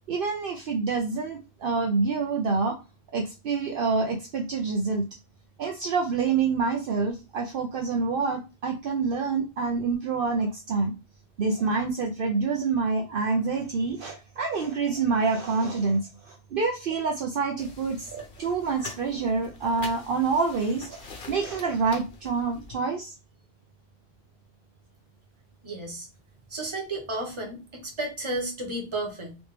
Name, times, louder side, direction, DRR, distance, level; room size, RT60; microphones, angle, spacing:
voice 1, 0.1-2.8 3.1-5.1 5.6-10.9 11.4-23.1, right 4 dB, 60° right, 1 dB, 0.8 m, -27 dB
sound 1, 17.6-22.7, left 3 dB, 60° left, 1.0 m, -45 dB
voice 2, 25.6-26.1 26.5-29.4, right 2 dB, 30° right, 1 dB, 1.1 m, -33 dB
3.2 x 3.0 x 3.2 m, 0.29 s
omnidirectional pair, 1.1 m